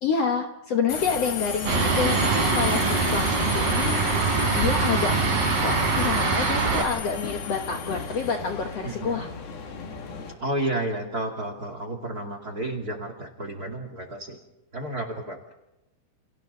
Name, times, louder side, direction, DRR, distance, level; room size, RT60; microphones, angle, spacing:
voice 1, 0.0-5.1 5.6-9.3, left 5 dB, 55° left, 3 dB, 2.0 m, -28 dB
Subway metro underground, 0.9-10.3, left 6 dB, 80° left, 4.4 m, -34 dB
Fixed-wing aircraft airplane, 1.7-6.8, right 4 dB, 80° right, 5.6 m, -23 dB
voice 2, 8.8-9.2 10.4-14.4 14.7-15.4, right 1 dB, 30° right, 5 dB, 2.2 m, -31 dB
30.0 x 30.0 x 4.0 m, 0.92 s
omnidirectional pair, 4.2 m